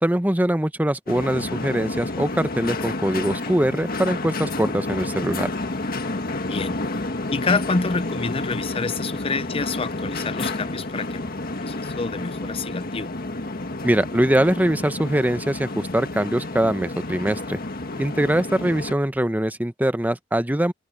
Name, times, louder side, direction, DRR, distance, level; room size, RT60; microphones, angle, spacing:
voice 1, 0.0-5.5 13.8-17.6 18.0-20.7, right 1 dB, 10° right, 0.8 m, -22 dB
sound 1, 1.1-18.9, left 2 dB, 50° left, 1.8 m, -30 dB
voice 2, 6.5-6.8 7.3-11.2 11.6-13.1, left 4 dB, 30° left, 0.6 m, -27 dB
open air
head